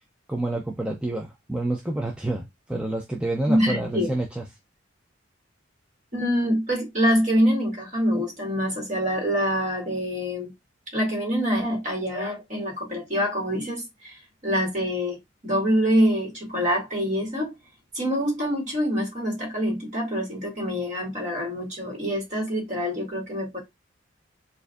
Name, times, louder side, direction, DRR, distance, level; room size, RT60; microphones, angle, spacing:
voice 1, 0.3-4.4, right 2 dB, 5° right, 0.4 m, -28 dB
voice 2, 3.5-4.1 6.1-10.5 10.9-14.1 14.4-15.2 15.4-17.5 17.9-23.6, equal, 35° right, 1.9 m, -25 dB
4.5 x 2.6 x 2.3 m
head